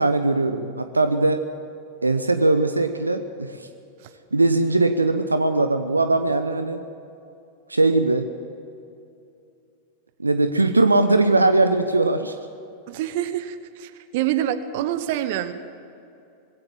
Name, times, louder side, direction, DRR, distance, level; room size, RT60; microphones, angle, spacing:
voice 1, 0.0-1.4 2.0-3.7 4.3-6.8 7.7-8.3 10.2-12.4, right 2 dB, 80° right, 9 dB, 0.9 m, -20 dB
voice 2, 12.9-15.5, right 11 dB, 50° right, 12 dB, 1.2 m, -26 dB
20.5 x 17.0 x 7.6 m, 2.6 s
figure-of-eight pair, 90°, 0 cm